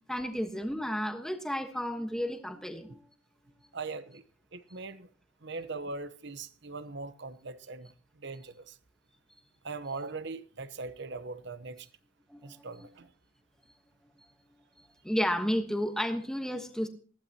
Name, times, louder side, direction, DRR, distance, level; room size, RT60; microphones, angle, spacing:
voice 1, 0.1-3.0 12.3-12.7 14.8-16.9, equal, 5° left, 1.2 m, -32 dB
voice 2, 3.7-4.2 4.5-5.1 5.4-8.8 9.6-11.9 12.4-13.1, right 3 dB, 55° right, 0.9 m, -40 dB
20.0 x 15.5 x 2.9 m
head